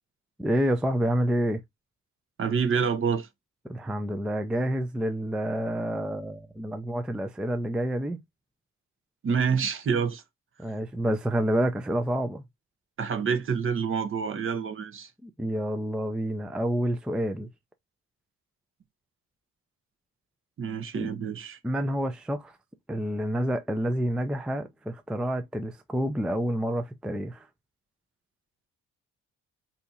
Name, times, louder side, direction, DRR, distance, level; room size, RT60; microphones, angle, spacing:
voice 1, 0.4-1.6 3.7-8.2 10.6-12.4 15.2-17.5 21.0-21.1 21.6-22.5 22.9-27.5, equal, 5° right, 0.4 m, -28 dB
voice 2, 2.4-3.3 9.2-10.2 13.0-15.1 20.6-21.6, right 6 dB, 45° right, 0.8 m, -27 dB
2.8 x 2.4 x 4.0 m
cardioid pair, 90°, 30 cm